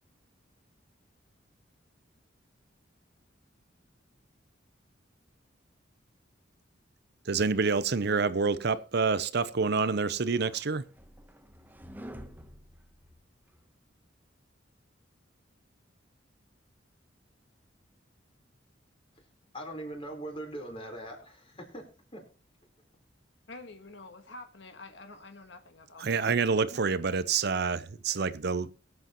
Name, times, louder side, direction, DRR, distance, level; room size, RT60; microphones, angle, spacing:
voice 1, 7.3-10.8 26.0-28.7, right 4 dB, 60° right, 0.7 m, -27 dB
sound 1, 10.2-13.6, equal, 10° right, 1.0 m, -49 dB
voice 2, 19.5-21.9 22.1-22.2, right 1 dB, 30° left, 4.2 m, -41 dB
voice 3, 23.5-26.3 26.6-26.8, left 2 dB, 70° left, 1.5 m, -48 dB
22.5 x 8.0 x 3.0 m
head